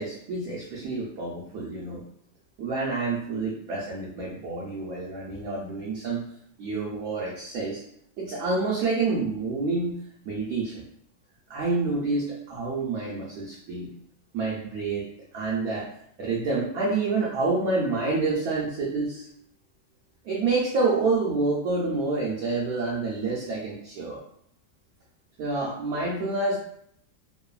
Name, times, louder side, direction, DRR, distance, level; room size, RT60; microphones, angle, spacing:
voice 1, 0.0-2.0 2.6-6.2 6.6-7.8 8.2-10.0 10.2-10.8 11.5-13.9 14.3-15.1 15.3-15.9 16.2-19.3 20.2-24.2 25.4-26.6, right 3 dB, 70° right, -4 dB, 0.9 m, -28 dB
3.0 x 2.0 x 2.3 m, 0.69 s
omnidirectional pair, 1.9 m